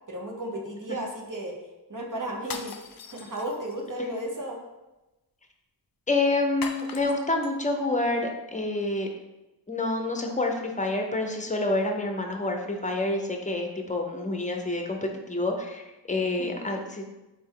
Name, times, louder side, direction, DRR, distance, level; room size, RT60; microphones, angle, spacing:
voice 1, 0.1-1.6 1.9-4.6 16.4-16.7, right 1 dB, 45° right, -1 dB, 0.9 m, -34 dB
sound 1, 2.4-3.9 6.6-7.5, left 6 dB, 55° left, 0.5 m, -40 dB
voice 2, 6.1-9.1 9.7-17.0, left 2 dB, 15° left, 3 dB, 0.6 m, -28 dB
4.1 x 3.3 x 3.7 m, 1.0 s
wide cardioid pair, 50°, 43 cm